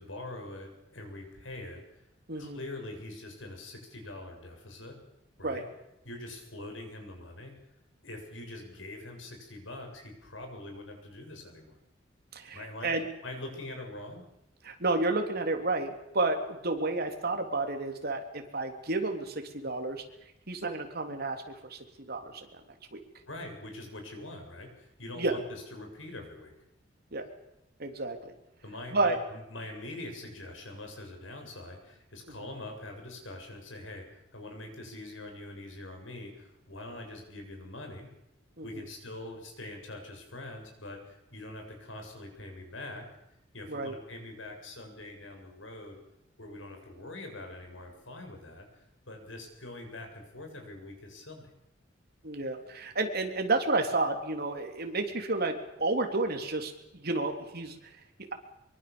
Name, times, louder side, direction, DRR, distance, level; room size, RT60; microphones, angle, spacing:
voice 1, 0.0-2.1 2.3-5.0 5.4-5.6 6.0-7.5 8.0-11.7 12.5-12.9 13.2-14.2 23.3-26.5 28.6-38.1 38.6-46.0 46.4-51.5, left 2 dB, 90° left, 3 dB, 7.5 m, -44 dB
voice 2, 12.3-13.1 14.6-20.0 20.5-21.8 22.1-22.6 22.9-23.0 25.2-25.4 27.1-27.2 27.8-28.3 28.9-29.2 38.6-38.7 43.7-43.9 52.2-57.9, right 2 dB, 55° right, 4 dB, 3.6 m, -31 dB
24.5 x 23.5 x 7.1 m, 0.86 s
head